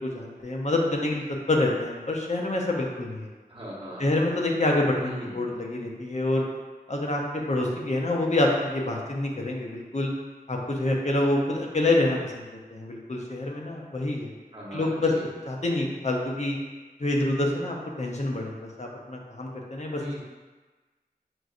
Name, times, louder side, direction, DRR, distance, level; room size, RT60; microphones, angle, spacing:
voice 1, 0.0-3.3 4.0-6.5 6.9-10.1 10.5-14.3 14.7-16.6 17.0-20.2, left 2 dB, 45° left, -1 dB, 0.7 m, -27 dB
voice 2, 3.5-4.0 5.0-5.5 14.5-15.3 20.0-20.2, right 1 dB, 35° right, -6 dB, 1.0 m, -38 dB
6.1 x 2.6 x 2.5 m, 1.3 s
wide cardioid pair, 50°, 16 cm